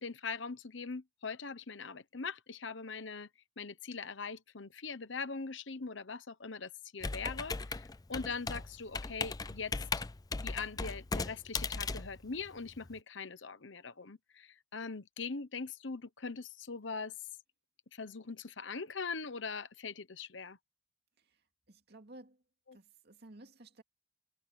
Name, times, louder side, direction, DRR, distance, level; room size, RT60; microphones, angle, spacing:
voice 1, 0.0-3.3 3.6-9.7 10.3-17.1 17.9-20.6 22.7-22.8, left 4 dB, 65° left, 1.1 m, -42 dB
Computer keyboard, 7.0-12.9, left 4 dB, 20° left, 0.5 m, -38 dB
voice 2, 21.7-22.4 22.7-23.8, right 1 dB, 55° right, 2.4 m, -54 dB
head